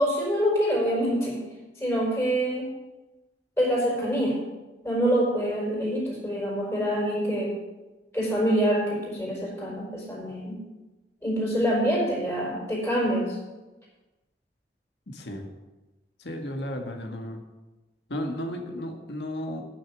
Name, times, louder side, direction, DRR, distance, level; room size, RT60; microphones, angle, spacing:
voice 1, 0.0-1.4 1.8-2.7 3.6-4.3 4.8-7.5 8.1-10.6 11.2-13.4, equal, 15° left, -4 dB, 4.7 m, -25 dB
voice 2, 15.1-15.5 16.2-17.4 18.1-19.7, left 1 dB, 70° left, 3 dB, 1.8 m, -34 dB
9.8 x 6.7 x 8.7 m, 1.1 s
head